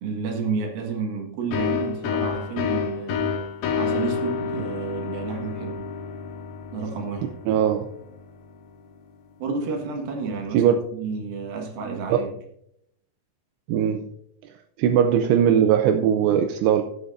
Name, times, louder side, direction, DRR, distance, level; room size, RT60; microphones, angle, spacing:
voice 1, 0.0-3.3 3.7-5.8 6.7-7.3 9.4-12.3, right 4 dB, 60° right, 2 dB, 3.2 m, -31 dB
sound 1, 1.5-9.0, left 6 dB, 70° left, 2.4 m, -29 dB
voice 2, 7.5-7.9 10.5-10.7 12.1-12.2 13.7-14.1 14.8-16.8, right 9 dB, 80° right, 5 dB, 2.6 m, -19 dB
16.5 x 8.0 x 2.6 m, 0.72 s
omnidirectional pair, 5.1 m